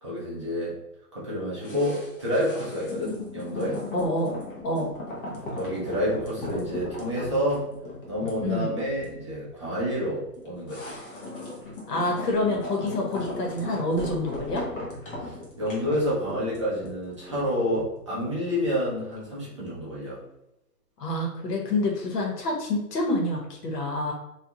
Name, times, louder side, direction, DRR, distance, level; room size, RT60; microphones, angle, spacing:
voice 1, 0.0-0.7 1.1-3.8 5.2-7.7 8.1-11.0 15.2-20.2, equal, 20° right, -8 dB, 0.4 m, -29 dB
sound 1, 1.6-18.9 19.2-19.3, left 2 dB, 35° left, 0.6 m, -38 dB
voice 2, 3.9-4.4 4.6-4.9 8.4-8.7 11.9-14.6 21.0-24.1, left 1 dB, 70° left, 0 dB, 1.0 m, -27 dB
2.4 x 2.3 x 2.7 m, 0.84 s
hypercardioid pair, 145°, 50 cm